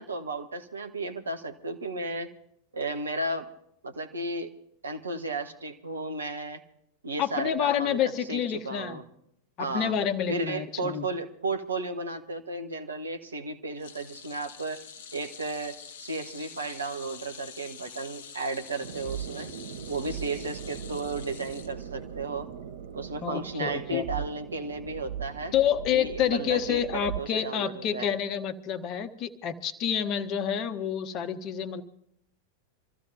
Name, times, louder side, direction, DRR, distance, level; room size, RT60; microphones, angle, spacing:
voice 1, 0.0-2.3 2.7-3.5 3.8-4.5 4.8-6.6 7.0-8.0 8.3-9.1 9.6-10.0 10.3-14.8 15.1-19.5 19.9-22.5 22.9-25.5 25.9-28.1, right 2 dB, 75° right, 6 dB, 1.4 m, -34 dB
voice 2, 7.2-9.0 9.6-11.1 23.2-24.0 25.5-31.8, left 9 dB, 35° left, 10 dB, 1.1 m, -28 dB
sound 1, 13.8-22.3 22.6-22.8 24.0-24.1, left 7 dB, 60° left, 0.8 m, -46 dB
sound 2, 18.8-27.2, right 8 dB, 55° right, 0.8 m, -39 dB
27.0 x 14.5 x 2.8 m, 0.74 s
figure-of-eight pair, 90°, 0 cm